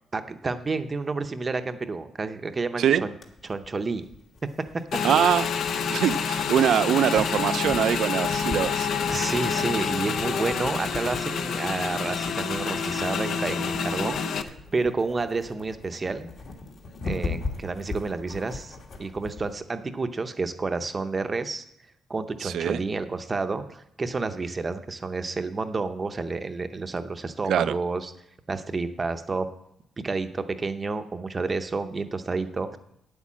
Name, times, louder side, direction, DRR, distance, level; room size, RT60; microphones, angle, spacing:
voice 1, 0.1-3.2 3.4-4.1 5.8-6.0 9.1-16.3 17.0-21.6 22.1-28.1 28.5-29.5 30.0-32.8, right 3 dB, 25° right, 9 dB, 0.7 m, -30 dB
sound 1, 3.2-19.5, left 3 dB, 45° left, 1.6 m, -39 dB
Motorcycle / Engine, 4.9-14.4, left 6 dB, 65° left, 0.7 m, -28 dB
voice 2, 5.0-5.5 5.9-8.9 22.4-22.8 27.5-27.8, right 9 dB, 70° right, 15 dB, 0.4 m, -23 dB
9.5 x 8.3 x 7.4 m, 0.76 s
cardioid pair, 150°, 0 cm